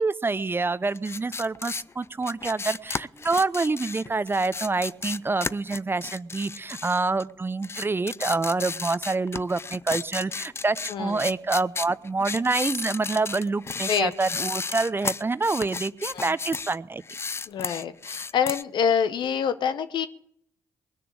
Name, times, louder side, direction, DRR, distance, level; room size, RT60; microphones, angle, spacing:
voice 1, 0.0-17.0, right 3 dB, 25° right, 17 dB, 0.6 m, -27 dB
sound 1, 0.9-7.3 7.6-16.8 17.0-18.6, left 4 dB, 30° left, 0.5 m, -33 dB
voice 2, 10.9-11.2 13.9-14.1 16.1-16.3 17.5-20.1, left 7 dB, 65° left, 12 dB, 1.0 m, -26 dB
20.0 x 6.8 x 8.8 m, 0.68 s
hypercardioid pair, 40°, 9 cm